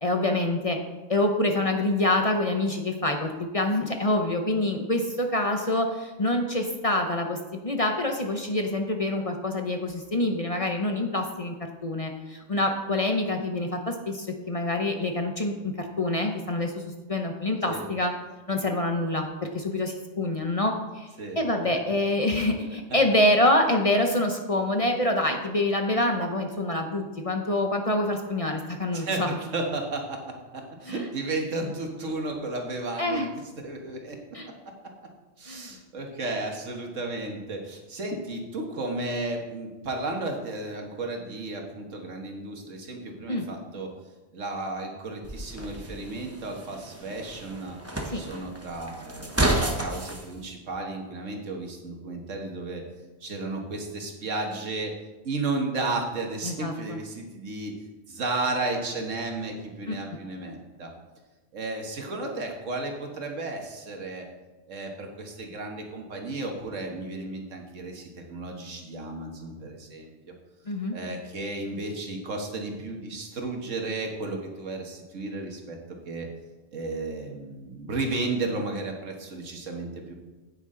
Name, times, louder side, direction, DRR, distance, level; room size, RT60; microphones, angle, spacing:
voice 1, 0.0-0.8 1.1-11.5 11.8-18.1 18.5-19.3 19.5-21.1 21.4-29.3 30.9-31.1 33.0-33.3 34.3-34.5 35.5-35.8 43.3-43.5 48.1-48.2 56.4-57.0 59.9-60.0 70.7-71.0, left 1 dB, 35° left, 3 dB, 0.7 m, -26 dB
voice 2, 28.9-33.2 33.6-34.2 35.4-43.9 44.3-47.8 48.1-52.8 53.2-55.0 55.2-57.7 58.1-60.9 61.5-64.3 64.7-70.3 70.9-75.8 76.1-76.3 76.7-80.1, right 2 dB, 85° right, 2 dB, 1.7 m, -33 dB
sound 1, 45.2-50.2, right 1 dB, 15° right, 0.8 m, -31 dB
9.6 x 9.0 x 3.8 m, 1.2 s
omnidirectional pair, 1.3 m